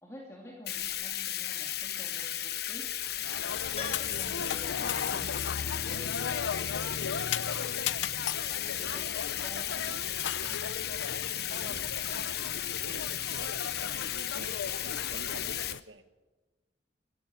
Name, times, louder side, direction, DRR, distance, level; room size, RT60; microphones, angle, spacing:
voice 1, 0.0-2.9 4.0-5.5 5.8-7.8 8.5-10.3 11.5-11.9, left 1 dB, 15° left, -1 dB, 2.4 m, -50 dB
Bathtub (filling or washing), 0.7-15.7, left 11 dB, 55° left, 1.1 m, -35 dB
sound 1, 2.9-15.8, left 7 dB, 85° left, 0.6 m, -36 dB
Keyboard (musical), 3.8-5.8 6.1-6.2 8.9-9.0 9.2-9.3, left 4 dB, 35° left, 4.0 m, -45 dB
voice 2, 8.7-9.0 9.7-10.0 10.4-10.6 12.8-16.0, right 2 dB, 85° right, 10 dB, 1.5 m, -49 dB
26.0 x 15.5 x 8.6 m, 1.3 s
head